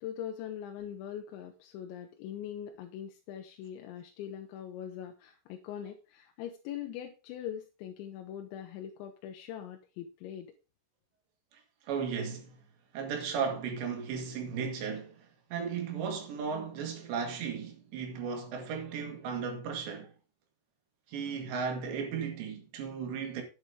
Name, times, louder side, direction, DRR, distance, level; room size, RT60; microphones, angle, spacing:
voice 1, 0.0-10.5, left 10 dB, 80° left, 2.8 m, -42 dB
voice 2, 11.5-12.6 12.9-20.1 21.1-23.4, right 6 dB, 65° right, 3.6 m, -35 dB
10.0 x 8.3 x 3.6 m
omnidirectional pair, 5.9 m